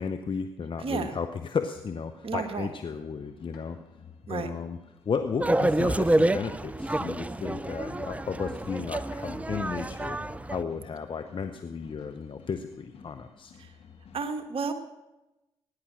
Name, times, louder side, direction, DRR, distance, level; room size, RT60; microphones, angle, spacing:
voice 1, 0.0-3.8 4.2-4.8 5.1-10.2 10.5-13.5, left 5 dB, 50° left, 9 dB, 0.9 m, -34 dB
voice 2, 0.8-1.2 2.2-2.7 4.3-4.5 13.6-13.8 14.1-14.7, right 5 dB, 55° right, 8 dB, 1.7 m, -32 dB
sound 1, 1.7-14.2, left 6 dB, 65° left, 1.8 m, -53 dB
sound 2, 3.5-4.0 6.1-6.6 7.6-7.7 9.0-9.7 12.0-12.3 13.6-13.9, left 4 dB, 90° left, 1.9 m, -57 dB
sound 3, 5.4-10.6, right 1 dB, 10° right, 0.6 m, -28 dB
16.5 x 10.5 x 6.3 m, 0.98 s
hypercardioid pair, 45°, 11 cm